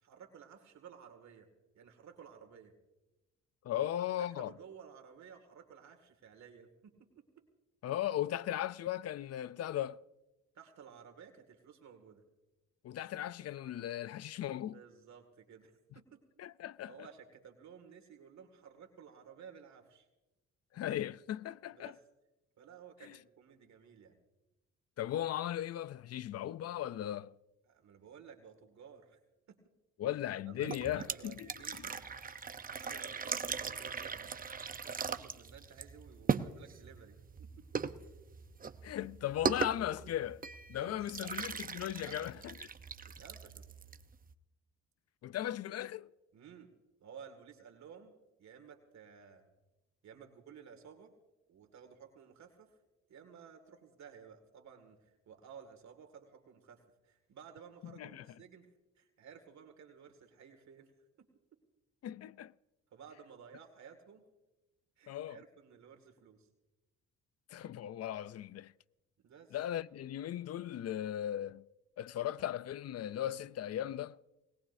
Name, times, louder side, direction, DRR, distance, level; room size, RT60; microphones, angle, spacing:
voice 1, 0.0-1.5 1.7-2.7 3.7-3.9 4.2-7.4 10.5-12.2 14.7-16.2 16.9-20.1 21.7-22.0 22.6-24.2 27.7-29.2 29.5-29.6 30.3-32.0 32.8-34.3 34.8-37.7 40.8-42.4 43.0-43.7 46.3-46.7 47.0-48.1 48.4-49.5 50.0-51.1 51.5-52.8 53.1-58.7 59.0-60.9 61.2-61.3 62.9-64.2 65.0-66.5 69.2-69.6, right 7 dB, 65° right, 2.2 m, -55 dB
voice 2, 3.6-4.5 7.8-10.0 12.8-14.8 16.4-16.9 20.7-21.9 23.0-23.2 25.0-27.4 30.0-31.5 38.8-40.4 40.7-42.3 45.2-46.1 57.8-58.3 62.0-62.5 65.1-65.4 67.5-68.7 69.5-71.6 72.0-74.2, left 12 dB, 55° left, 0.5 m, -37 dB
sound 1, 30.6-44.3, right 5 dB, 30° right, 0.8 m, -39 dB
20.5 x 19.0 x 2.7 m
cardioid pair, 90°, 30 cm